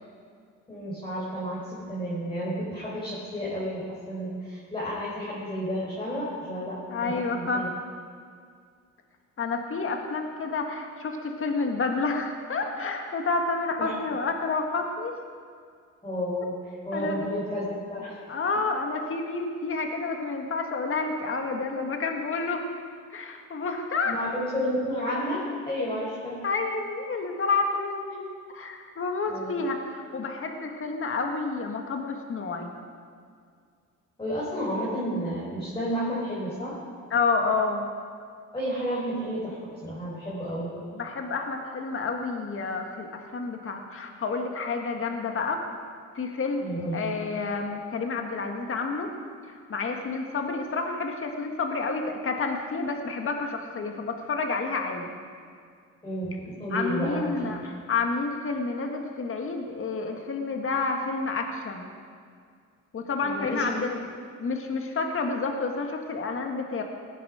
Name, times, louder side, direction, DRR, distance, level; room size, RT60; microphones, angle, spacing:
voice 1, 0.7-7.7 13.8-13.9 16.0-18.2 24.0-26.4 29.3-29.6 34.2-36.8 38.5-40.8 46.6-47.1 56.0-57.6 63.2-63.8, equal, 15° left, -8 dB, 4.7 m, -31 dB
voice 2, 6.9-7.6 9.4-15.1 16.9-17.4 18.3-22.7 23.1-24.1 26.4-32.7 37.1-37.9 40.9-45.6 46.2-49.1 49.4-55.2 56.7-61.9 62.9-64.0 64.4-66.8, left 4 dB, 45° left, 3 dB, 1.8 m, -29 dB
19.0 x 10.0 x 5.0 m, 2.1 s
cardioid pair, 90°, 30 cm